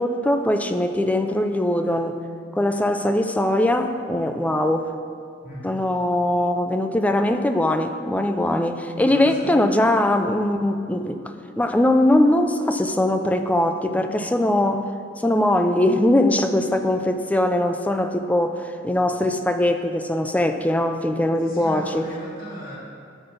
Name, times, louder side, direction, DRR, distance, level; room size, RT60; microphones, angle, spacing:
voice 1, 0.0-2.2 2.5-4.9 5.6-14.9 15.2-22.1, left 1 dB, 10° left, 7 dB, 0.4 m, -21 dB
voice 2, 9.0-9.7 21.4-22.8, equal, 50° left, -6 dB, 2.5 m, -37 dB
11.5 x 4.0 x 6.8 m, 2.4 s
head